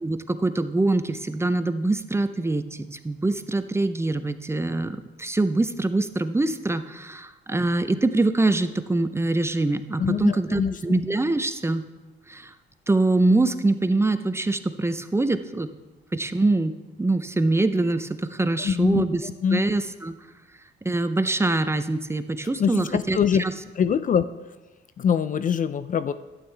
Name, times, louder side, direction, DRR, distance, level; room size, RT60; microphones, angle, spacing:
voice 1, 0.0-11.8 12.3-12.5 12.9-15.7 16.1-20.1 20.8-23.5, right 2 dB, 15° right, 10 dB, 0.5 m, -24 dB
voice 2, 10.0-10.7 18.6-19.1 19.4-19.6 22.6-23.4 23.8-24.3 25.0-26.1, left 7 dB, 40° left, 13 dB, 0.4 m, -23 dB
11.5 x 8.9 x 3.3 m, 1.1 s
cardioid pair, 90°, 20 cm